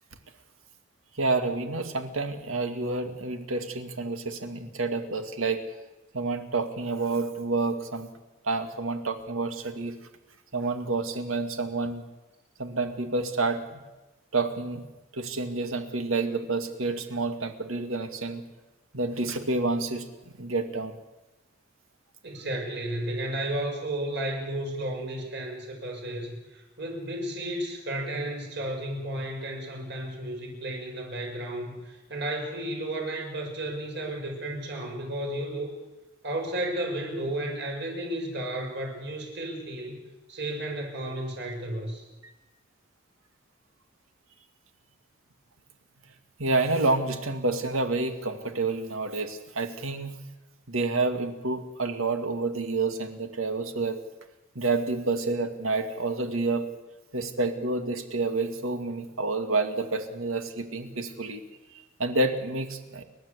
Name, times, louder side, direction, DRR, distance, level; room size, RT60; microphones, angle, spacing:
voice 1, 1.1-5.6 6.1-8.1 8.4-10.0 10.5-12.0 12.6-13.8 14.3-14.8 15.1-18.4 18.9-21.0 42.2-42.3 46.4-50.2 50.7-54.0 54.6-56.7 57.1-61.4 61.7-63.0, right 3 dB, 90° right, 7 dB, 2.2 m, -29 dB
voice 2, 22.2-35.7 36.2-40.0 40.3-42.0, right 1 dB, 55° right, 0 dB, 6.4 m, -33 dB
29.5 x 12.5 x 8.2 m, 1.1 s
head